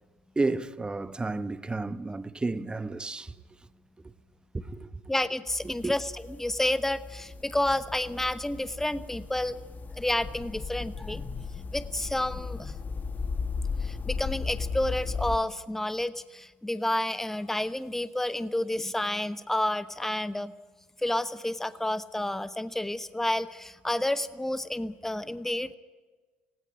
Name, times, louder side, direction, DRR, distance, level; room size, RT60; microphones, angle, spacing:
voice 1, 0.4-3.3 4.0-4.1 4.5-5.0 5.6-5.9, right 3 dB, 15° right, 1.0 m, -32 dB
voice 2, 5.1-9.6 9.9-12.8 13.8-20.5 21.0-25.7, left 1 dB, 5° left, 0.9 m, -30 dB
sound 1, 5.5-15.4, left 5 dB, 35° left, 1.2 m, -36 dB
18.5 x 17.0 x 10.0 m
hypercardioid pair, 70°, 5 cm